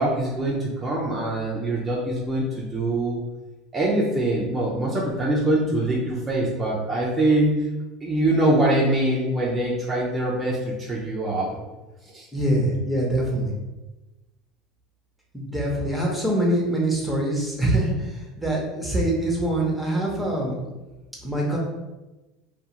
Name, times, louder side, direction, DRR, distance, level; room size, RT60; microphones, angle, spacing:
voice 1, 0.0-3.2 3.7-7.7 8.0-11.6 12.0-12.3, right 1 dB, 25° right, -4 dB, 0.5 m, -23 dB
voice 2, 12.3-13.5 15.3-20.6 21.2-21.6, right 1 dB, ahead, -3 dB, 0.8 m, -24 dB
2.3 x 2.3 x 2.9 m, 1.1 s
supercardioid pair, 105°, 0 cm